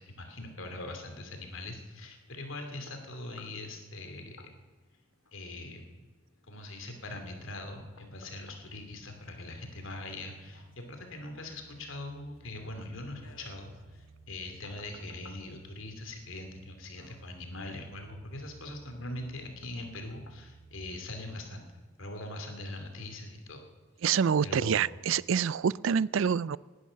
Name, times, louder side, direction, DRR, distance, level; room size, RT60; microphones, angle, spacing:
voice 1, 0.0-4.5 5.3-5.8 6.5-21.6 22.0-23.6 24.4-24.8, left 2 dB, 70° left, 2.7 m, -42 dB
sound 1, 2.2-21.4 21.9-22.1, left 3 dB, 90° left, 2.3 m, -61 dB
sound 2, 7.1-20.8, right 3 dB, 25° right, 5.8 m, -57 dB
voice 2, 24.0-26.6, right 7 dB, 65° right, 0.4 m, -27 dB
19.0 x 11.0 x 6.4 m
head